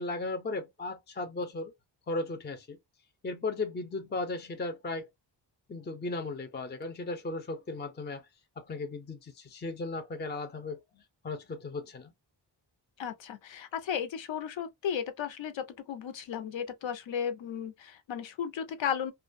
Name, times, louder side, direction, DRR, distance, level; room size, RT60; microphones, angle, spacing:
voice 1, 0.0-1.7 2.1-2.8 3.2-5.1 5.7-8.3 8.6-12.1, left 2 dB, 25° left, 0.4 m, -36 dB
voice 2, 13.0-19.1, left 8 dB, 80° left, 0.6 m, -35 dB
2.4 x 2.2 x 2.5 m
wide cardioid pair, 135°, 44 cm